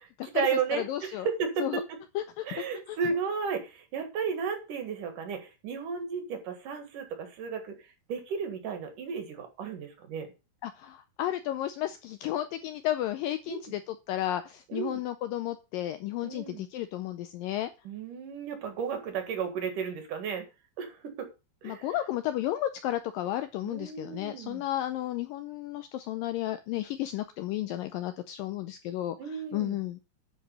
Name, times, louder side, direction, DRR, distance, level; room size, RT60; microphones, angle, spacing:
voice 1, 0.0-2.0 2.4-10.3 13.5-13.6 14.7-15.0 16.2-16.7 17.8-20.5 20.8-21.3 21.6-22.0 23.6-24.6 29.2-29.8, right 6 dB, 60° right, 6 dB, 2.9 m, -34 dB
voice 2, 0.9-1.3 1.6-1.8 2.2-3.0 10.6-17.7 21.6-29.2 29.5-30.0, left 13 dB, 80° left, 10 dB, 2.0 m, -33 dB
10.0 x 5.1 x 6.8 m, 0.29 s
omnidirectional pair, 4.6 m